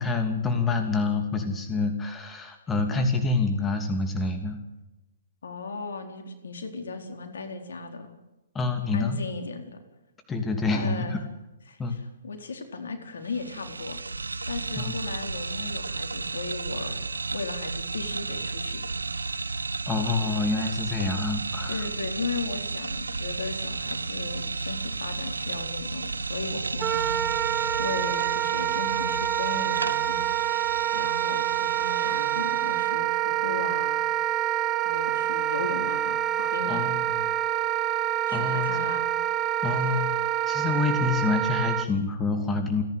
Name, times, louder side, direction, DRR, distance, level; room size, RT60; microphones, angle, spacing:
voice 1, 0.0-4.6 8.5-9.2 10.3-11.2 11.8-12.0 14.8-14.9 19.9-21.9 36.7-37.3 38.3-38.7 39.6-40.1 40.5-42.8, left 3 dB, 15° left, 6 dB, 2.8 m, -27 dB
voice 2, 5.4-8.1 8.9-9.8 10.7-11.2 11.7-14.0 14.5-17.0 17.3-18.8 19.1-19.6 21.7-27.5 27.8-30.2 30.9-34.1 34.8-37.0 38.3-39.1 39.7-39.9, left 4 dB, 70° left, 6 dB, 4.1 m, -36 dB
sound 1, 13.2-32.9, right 3 dB, 85° right, 1.0 m, -33 dB
Wind instrument woodwind instrument, 26.8-41.9, right 12 dB, 25° right, 1.2 m, -27 dB
30.0 x 11.0 x 9.4 m, 1.0 s
figure-of-eight pair, 125°, 0 cm